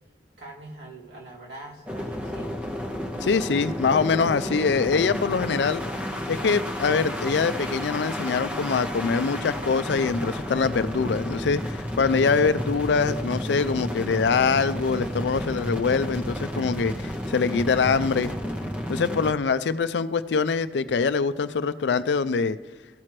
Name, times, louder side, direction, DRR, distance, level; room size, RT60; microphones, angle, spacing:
voice 1, 0.4-2.5, right 1 dB, 80° right, -3 dB, 2.2 m, -43 dB
sound 1, 1.9-19.3, equal, 10° right, 0.7 m, -31 dB
voice 2, 3.2-5.8 6.3-18.3 18.9-22.6, left 5 dB, 80° left, 14 dB, 0.4 m, -24 dB
15.0 x 5.9 x 3.2 m, 1.4 s
head